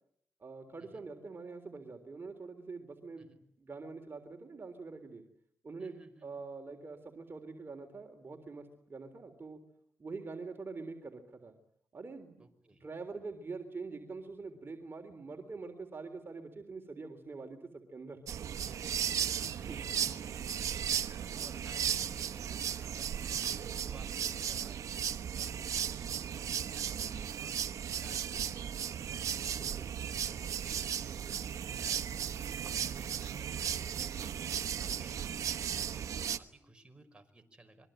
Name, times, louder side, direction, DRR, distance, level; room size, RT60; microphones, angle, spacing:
voice 1, 0.4-5.2 5.6-6.0 6.2-9.6 10.0-11.6 11.9-12.5 12.8-18.2 19.2-19.8 29.6-29.9, right 4 dB, 45° right, 4 dB, 3.5 m, -45 dB
voice 2, 5.8-6.4 12.4-12.8 18.6-37.9, right 2 dB, 20° right, 5 dB, 5.6 m, -58 dB
sound 1, 18.3-36.4, right 9 dB, 85° right, 1.1 m, -36 dB
26.5 x 22.5 x 9.0 m, 0.72 s
cardioid pair, 65°, 5 cm